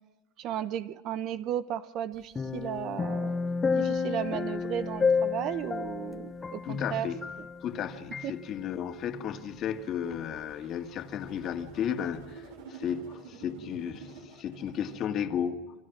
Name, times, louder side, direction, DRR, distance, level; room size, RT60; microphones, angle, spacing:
voice 1, 0.4-3.4 3.7-7.1 8.2-8.3, right 10 dB, 40° right, 0.9 m, -34 dB
sound 1, 2.4-7.8 8.1-8.3, left 5 dB, 15° left, 0.9 m, -30 dB
voice 2, 6.6-7.2 7.6-15.6, left 8 dB, 35° left, 2.0 m, -34 dB
sound 2, 9.8-15.0, right 5 dB, 80° right, 6.7 m, -49 dB
29.5 x 25.0 x 6.1 m
supercardioid pair, 150°, 0 cm